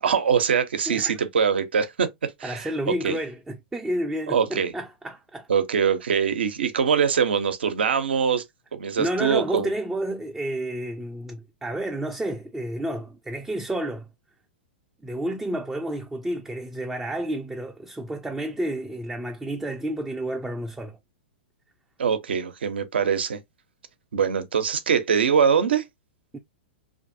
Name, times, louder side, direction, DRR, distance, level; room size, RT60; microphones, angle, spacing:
voice 1, 0.0-2.7 3.0-3.2 4.3-4.7 5.5-8.4 8.7-9.7 22.0-23.4 24.1-25.8, right 7 dB, 75° right, 0.5 m, -23 dB
voice 2, 0.9-1.2 2.4-5.5 9.0-14.1 15.0-21.0 26.3-26.4, right 1 dB, 5° right, 0.3 m, -30 dB
2.6 x 2.5 x 2.5 m
hypercardioid pair, 110°, 6 cm